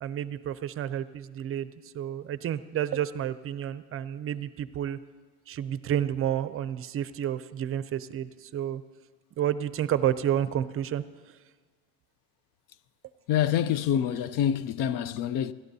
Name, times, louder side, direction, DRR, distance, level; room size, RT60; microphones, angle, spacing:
voice 1, 0.0-5.0 5.5-8.8 9.4-11.0, right 10 dB, 35° right, 0.5 m, -30 dB
voice 2, 13.3-15.5, left 10 dB, 60° left, 0.5 m, -26 dB
28.5 x 12.0 x 2.7 m
cardioid pair, 115°, 37 cm